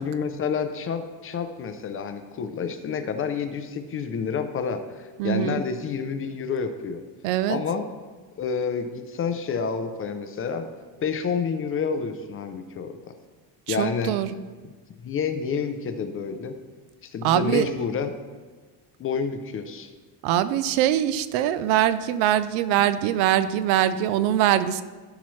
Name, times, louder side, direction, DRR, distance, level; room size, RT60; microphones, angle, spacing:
voice 1, 0.0-7.0 7.5-7.9 8.4-10.7 11.0-13.0 13.7-14.2 15.0-16.6 17.0-18.1 19.0-19.9, left 6 dB, 30° left, 8 dB, 0.4 m, -29 dB
voice 2, 5.2-5.6 7.2-7.6 13.7-14.3 17.2-17.7 20.2-24.8, right 12 dB, 90° right, 14 dB, 0.6 m, -22 dB
14.0 x 5.8 x 3.1 m, 1.4 s
cardioid pair, 155°, 48 cm